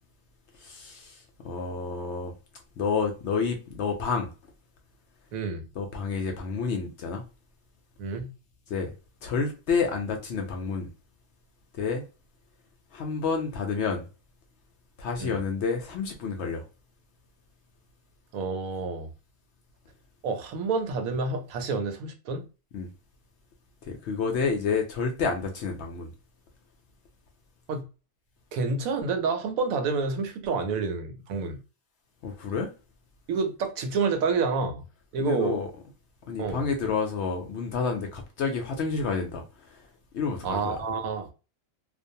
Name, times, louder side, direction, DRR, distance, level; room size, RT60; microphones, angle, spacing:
voice 1, 0.6-2.3 2.8-4.3 5.7-7.2 8.7-8.9 9.2-10.9 11.7-12.0 12.9-14.1 15.0-16.6 22.7-22.9 23.8-26.1 32.2-32.7 35.2-35.7 36.3-39.9 40.1-40.8, left 5 dB, 65° left, 0.7 m, -29 dB
voice 2, 5.3-5.6 8.0-8.3 15.2-15.4 18.3-19.1 20.2-22.4 27.7-27.9 28.5-31.6 33.3-34.8 35.1-35.6 36.4-36.7 40.4-41.3, right 4 dB, 80° right, 1.0 m, -28 dB
2.5 x 2.2 x 2.6 m
omnidirectional pair, 1.5 m